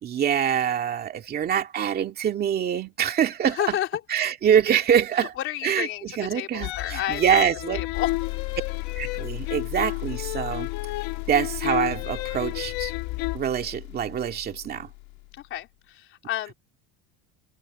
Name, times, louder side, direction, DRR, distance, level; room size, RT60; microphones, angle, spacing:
voice 1, 0.0-3.6 4.1-5.3 5.6-7.8 9.0-10.7 11.3-12.9 13.3-14.9, right 9 dB, 30° right, 2.2 m, -25 dB
voice 2, 3.4-4.0 5.2-7.4 7.7-8.1 15.3-16.5, left 12 dB, 40° left, 3.7 m, -31 dB
sound 1, 6.6-13.4, left 18 dB, 55° left, 1.7 m, -32 dB
sound 2, 7.9-15.5, left 29 dB, 75° left, 2.3 m, -36 dB
cardioid pair, 170°, 33 cm